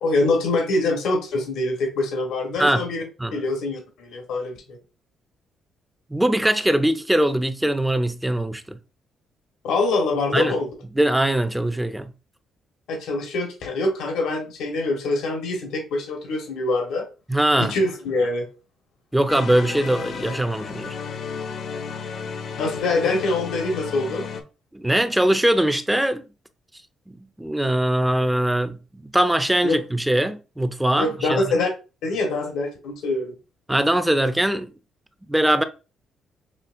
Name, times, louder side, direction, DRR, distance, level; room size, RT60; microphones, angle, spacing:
voice 1, 0.0-3.0 3.3-4.8 9.6-10.7 12.9-17.1 17.6-18.5 22.6-24.3 29.6-29.8 31.0-31.7 32.0-33.3, left 2 dB, 85° left, 1.3 m, -24 dB
voice 2, 6.1-8.8 10.3-10.5 11.0-12.1 17.3-17.7 19.1-21.0 24.7-26.2 27.1-31.4 33.7-34.7 35.3-35.6, right 1 dB, 5° right, 0.5 m, -21 dB
sound 1, 19.3-24.4, left 6 dB, 65° left, 0.8 m, -33 dB
5.8 x 2.7 x 2.5 m
cardioid pair, 90°, 0 cm